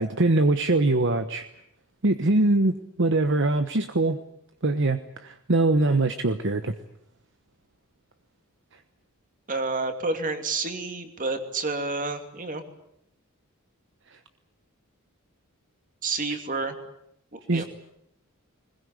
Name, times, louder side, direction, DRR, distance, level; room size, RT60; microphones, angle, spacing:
voice 1, 0.0-1.4 2.0-4.2 4.6-6.7 17.5-17.6, right 2 dB, 55° right, 9 dB, 1.1 m, -22 dB
voice 2, 9.5-12.6 16.0-16.7 17.3-17.6, right 3 dB, 40° right, 6 dB, 2.8 m, -29 dB
21.0 x 21.0 x 9.8 m, 0.76 s
head